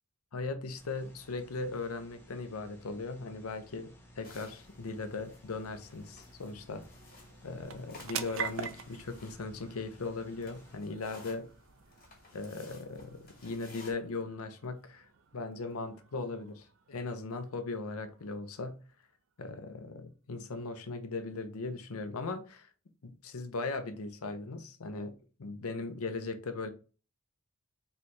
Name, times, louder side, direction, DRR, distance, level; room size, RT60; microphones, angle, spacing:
voice 1, 0.3-6.9 7.4-11.5 12.3-15.1 15.3-18.8 19.4-22.7 23.0-25.1 25.4-26.7, left 3 dB, 90° left, 0.7 m, -38 dB
sound 1, 0.8-10.8, equal, 10° left, 1.0 m, -57 dB
sound 2, 4.2-13.9, left 3 dB, 40° left, 1.9 m, -57 dB
sound 3, 4.9-19.5, right 7 dB, 60° right, 0.5 m, -47 dB
4.3 x 3.3 x 3.1 m
head